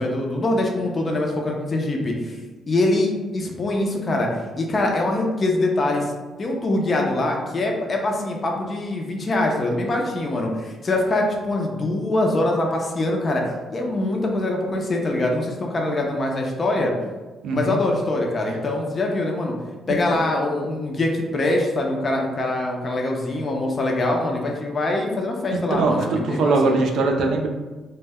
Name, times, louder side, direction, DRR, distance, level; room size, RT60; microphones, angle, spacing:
voice 1, 0.0-2.4 2.7-6.1 6.4-16.9 17.5-19.5 19.9-26.7, left 2 dB, 40° left, 1 dB, 0.4 m, -23 dB
voice 2, 17.4-17.8 25.5-27.5, right 3 dB, 75° right, 2 dB, 0.4 m, -21 dB
2.1 x 2.0 x 3.4 m, 1.2 s
cardioid pair, 90°, 0 cm